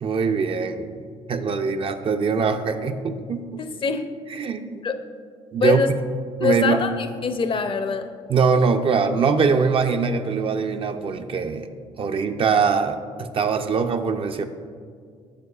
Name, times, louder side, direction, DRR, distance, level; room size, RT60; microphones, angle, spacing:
voice 1, 0.0-1.0 1.3-3.6 4.3-4.8 5.5-6.0 6.4-6.8 8.3-11.7 12.0-14.4, right 5 dB, 45° right, 7 dB, 0.5 m, -22 dB
voice 2, 3.6-4.0 4.8-5.0 5.6-5.9 6.4-8.1, left 5 dB, 40° left, 9 dB, 0.5 m, -23 dB
8.5 x 6.3 x 2.3 m, 2.1 s
supercardioid pair, 60°, 13 cm